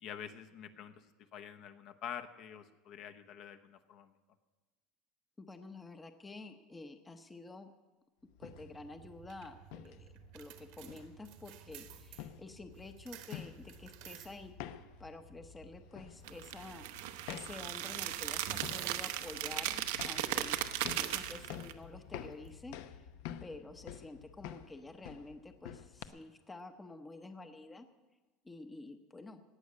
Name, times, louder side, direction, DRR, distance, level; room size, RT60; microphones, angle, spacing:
voice 1, 0.0-4.1, left 9 dB, 50° left, 7 dB, 0.9 m, -47 dB
voice 2, 5.4-7.7 8.4-14.5 15.0-20.5 20.9-23.0 23.4-27.9 28.4-29.4, left 2 dB, 10° left, 8 dB, 0.8 m, -49 dB
sound 1, 8.3-26.1, left 10 dB, 65° left, 0.8 m, -50 dB
sound 2, 8.4-23.1, right 11 dB, 65° right, 1.3 m, -55 dB
sound 3, 16.3-21.7, right 13 dB, 85° right, 0.9 m, -37 dB
18.0 x 6.4 x 9.5 m, 1.2 s
cardioid pair, 150°, 0 cm